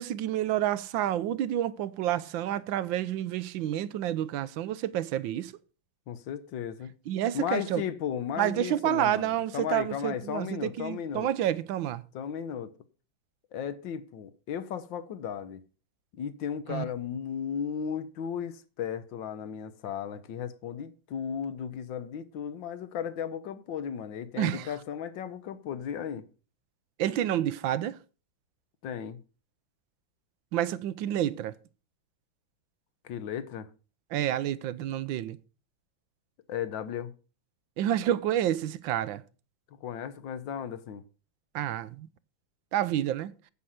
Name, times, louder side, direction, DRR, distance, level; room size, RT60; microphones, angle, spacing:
voice 1, 0.0-5.5 7.1-7.8 8.4-12.0 16.7-16.8 24.4-24.7 27.0-28.0 30.5-31.5 34.1-35.4 37.8-39.2 41.5-42.1 42.7-43.3, right 12 dB, 80° right, 1.4 m, -29 dB
voice 2, 6.1-6.9 7.3-11.3 12.1-12.7 13.5-15.6 16.1-26.3 28.8-29.2 33.0-33.7 36.5-37.1 39.8-41.0, left 8 dB, 75° left, 1.6 m, -35 dB
9.8 x 5.7 x 7.9 m
omnidirectional pair, 2.1 m